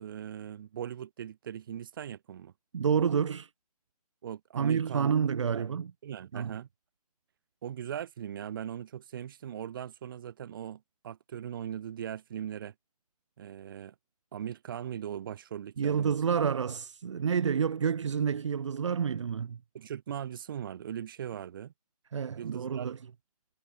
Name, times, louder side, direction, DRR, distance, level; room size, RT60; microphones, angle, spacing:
voice 1, 0.0-2.5 4.2-5.1 5.5-5.6 6.0-6.7 7.6-12.7 13.4-13.9 14.3-16.2 19.7-21.7 22.4-23.0, right 9 dB, 35° right, 1.8 m, -39 dB
voice 2, 2.7-3.5 4.6-5.9 6.3-6.5 15.8-19.6 22.1-23.0, right 7 dB, 50° right, 1.4 m, -29 dB
hypercardioid pair, 165°, 20 cm